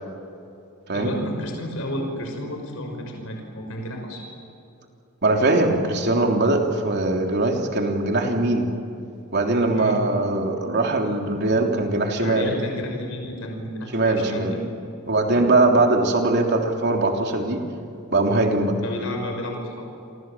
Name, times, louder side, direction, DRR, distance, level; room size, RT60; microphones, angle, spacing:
voice 1, 0.9-4.2 9.7-10.0 12.2-14.6 15.2-15.5 18.8-19.9, equal, 65° left, 2 dB, 5.8 m, -31 dB
voice 2, 5.2-8.7 9.3-12.5 13.9-14.6 15.1-17.6 18.1-18.7, right 2 dB, 50° right, 2 dB, 3.4 m, -21 dB
28.5 x 25.0 x 7.5 m, 2.6 s
head